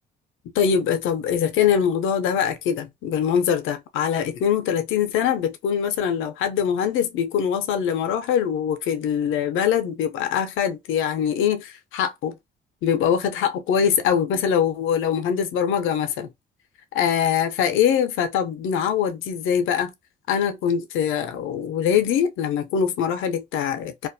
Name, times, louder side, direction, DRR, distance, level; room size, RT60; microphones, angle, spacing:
voice 1, 0.5-12.4 12.8-16.3 16.9-19.9 20.3-24.1, left 8 dB, 85° left, 0.5 m, -23 dB
2.3 x 2.1 x 2.6 m
cardioid pair, 90°, 20 cm